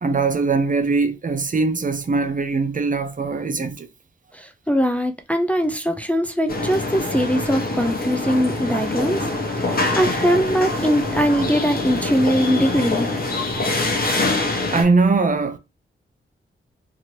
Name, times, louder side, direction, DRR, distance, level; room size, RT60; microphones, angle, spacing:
voice 1, 0.0-3.9 14.1-14.2 14.7-15.6, right 4 dB, 40° right, 0.6 m, -21 dB
voice 2, 4.3-9.3 9.7-13.1, equal, 5° left, 0.5 m, -21 dB
sound 1, 6.5-14.8, left 2 dB, 45° left, 1.0 m, -24 dB
2.9 x 2.9 x 2.8 m
cardioid pair, 65°, 21 cm